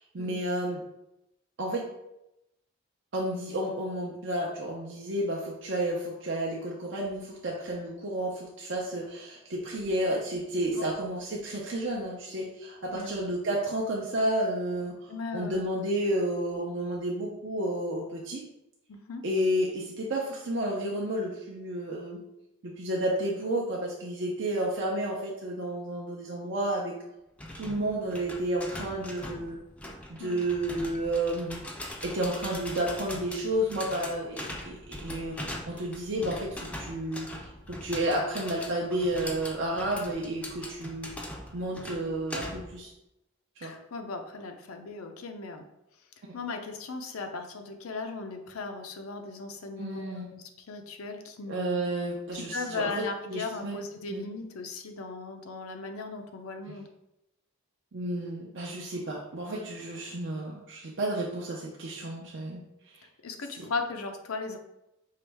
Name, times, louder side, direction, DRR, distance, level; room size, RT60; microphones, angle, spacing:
voice 1, 0.1-0.8 1.6-1.9 3.1-18.4 19.2-22.2 22.6-27.0 27.5-29.6 30.1-31.6 32.0-41.1 41.5-42.9 43.6-43.7 46.2-46.3 49.8-50.3 51.5-53.8 54.1-54.2 56.7-56.8 57.9-62.6 62.9-63.0, right 1 dB, 60° right, -2 dB, 0.6 m, -31 dB
voice 2, 15.1-15.6 18.9-19.2 27.8-27.9 30.2-30.3 43.6-45.7 46.3-51.8 52.3-56.9 63.2-64.6, left 3 dB, 90° left, 5 dB, 0.6 m, -37 dB
sound 1, 27.4-42.8, left 1 dB, 5° left, 0.4 m, -41 dB
4.8 x 3.1 x 3.4 m, 0.88 s
head